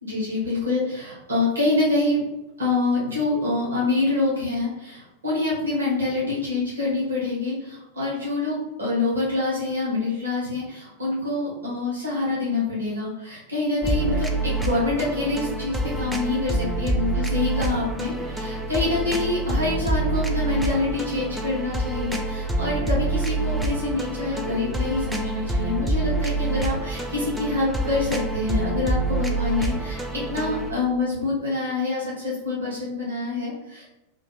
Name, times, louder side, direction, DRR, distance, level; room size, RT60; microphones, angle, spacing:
voice 1, 0.0-2.2 2.6-34.0, left 3 dB, 75° right, -6 dB, 1.1 m, -26 dB
sound 1, 13.8-30.7, right 2 dB, 5° right, 0.3 m, -27 dB
2.5 x 2.5 x 2.8 m, 0.96 s
figure-of-eight pair, 90°, 0 cm